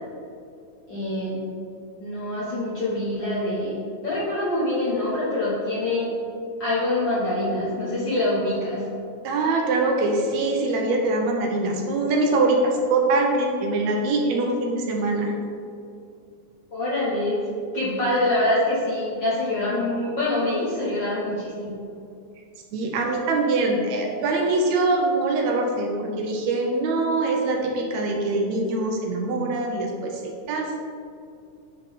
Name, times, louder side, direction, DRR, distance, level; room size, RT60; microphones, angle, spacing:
voice 1, 0.9-1.3 2.0-6.1 6.6-8.9 16.7-17.4 17.7-21.7, left 1 dB, 60° left, -8 dB, 1.2 m, -25 dB
voice 2, 9.2-15.3 22.7-30.8, right 2 dB, 75° right, 1 dB, 1.8 m, -23 dB
9.8 x 3.7 x 3.5 m, 2.4 s
omnidirectional pair, 3.4 m